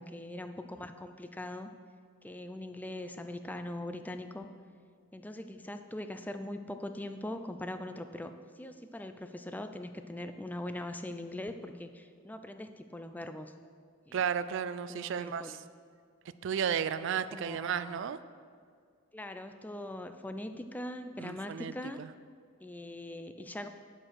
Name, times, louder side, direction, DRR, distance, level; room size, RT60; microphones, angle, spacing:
voice 1, 0.0-1.7 2.2-4.5 5.1-8.3 8.6-13.5 14.1-14.3 14.9-15.6 17.3-18.0 19.1-22.0 22.6-23.7, left 1 dB, 10° left, 8 dB, 0.4 m, -41 dB
voice 2, 14.1-15.6 16.4-18.2 21.2-21.7 22.0-22.1, right 7 dB, 60° right, 14 dB, 0.4 m, -33 dB
10.0 x 4.6 x 5.8 m, 2.1 s
head